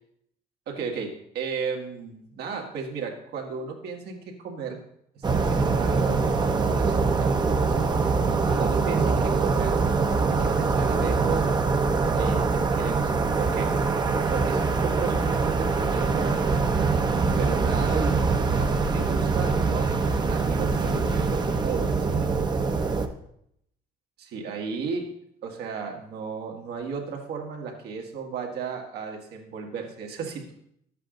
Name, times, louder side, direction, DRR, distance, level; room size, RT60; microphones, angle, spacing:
voice 1, 0.7-4.8 5.1-7.8 8.4-11.5 12.1-13.8 14.3-17.0 17.4-22.3 24.2-30.5, right 5 dB, 75° right, 1 dB, 1.9 m, -34 dB
sound 1, 5.2-23.1, right 4 dB, 25° right, 0.9 m, -24 dB
11.5 x 8.1 x 3.8 m, 0.73 s
cardioid pair, 110°, 17 cm